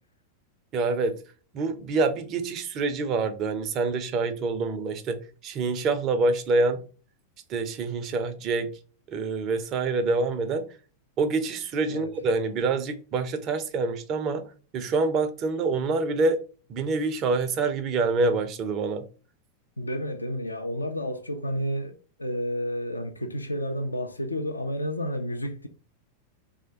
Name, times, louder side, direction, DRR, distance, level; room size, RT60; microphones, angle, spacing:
voice 1, 0.7-1.1 1.5-6.8 7.5-8.7 9.1-10.7 11.2-14.5 14.7-16.4 16.7-19.1, right 3 dB, 35° right, 0.4 m, -26 dB
voice 2, 19.8-25.7, equal, 80° left, 0.3 m, -31 dB
3.2 x 2.1 x 2.7 m
figure-of-eight pair, 90°, 0 cm